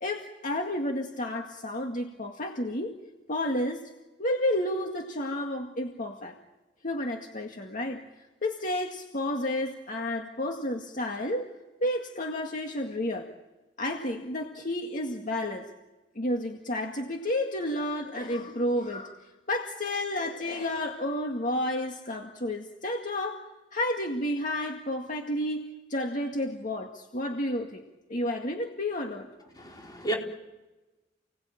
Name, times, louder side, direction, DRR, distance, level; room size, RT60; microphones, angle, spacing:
voice 1, 0.0-3.0 3.3-3.9 4.2-6.4 6.8-8.0 8.4-11.5 11.8-13.3 13.8-15.7 16.2-23.4 23.7-27.8 28.1-29.3, left 1 dB, 45° left, 2 dB, 2.1 m, -31 dB
voice 2, 29.5-30.2, right 2 dB, 20° left, 0 dB, 4.6 m, -32 dB
30.0 x 19.5 x 9.0 m, 1.1 s
head